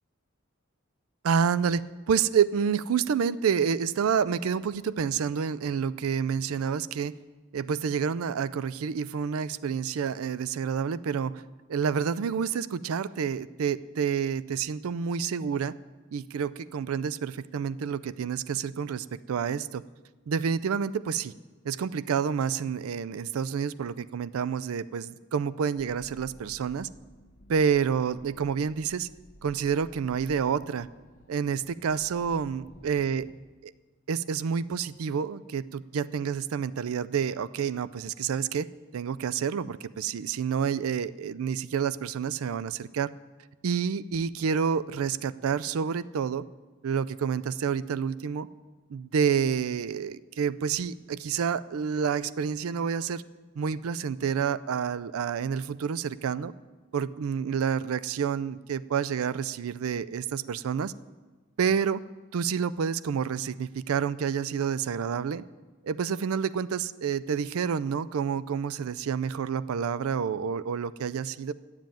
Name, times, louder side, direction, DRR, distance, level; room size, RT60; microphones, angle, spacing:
voice 1, 1.2-7.1 7.5-11.4 11.7-15.7 16.1-19.8 20.3-21.3 21.6-26.9 27.5-29.1 29.4-30.9 31.3-33.3 33.6-33.7 34.1-38.7 38.9-43.1 43.6-46.4 46.8-48.5 48.9-53.2 53.6-56.5 56.9-60.9 61.6-62.0 62.3-65.4 65.8-71.5, right 7 dB, 85° right, 17 dB, 0.4 m, -29 dB
sound 1, 25.8-33.3, equal, 40° left, 1.0 m, -54 dB
11.5 x 7.5 x 9.0 m, 1.3 s
head